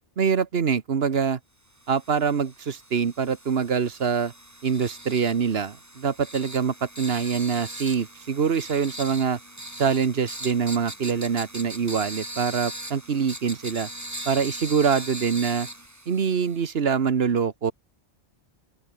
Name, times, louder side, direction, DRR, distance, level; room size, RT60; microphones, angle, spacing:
voice 1, 0.2-1.4 1.9-4.3 4.6-9.4 9.8-13.9 14.2-15.7 16.1-17.7, right 6 dB, 60° right, 1.4 m, -24 dB
sound 1, 1.8-16.7, right 1 dB, 15° right, 2.5 m, -40 dB
open air
omnidirectional pair, 1.2 m